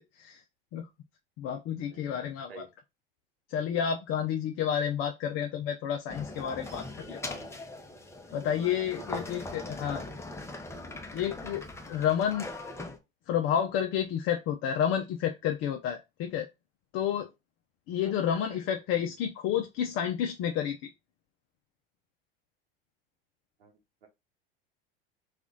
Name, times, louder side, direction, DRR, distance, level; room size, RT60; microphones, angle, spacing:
voice 1, 1.4-2.7 3.5-7.4 8.3-10.0 11.1-12.5 13.3-16.5 16.9-17.3 17.9-20.9, left 9 dB, 45° left, 0.6 m, -30 dB
sound 1, 6.1-13.0, left 2 dB, 10° left, 0.7 m, -40 dB
voice 2, 18.0-18.6 23.6-24.1, right 6 dB, 90° right, 0.9 m, -51 dB
3.0 x 2.4 x 3.7 m
hypercardioid pair, 90°, 29 cm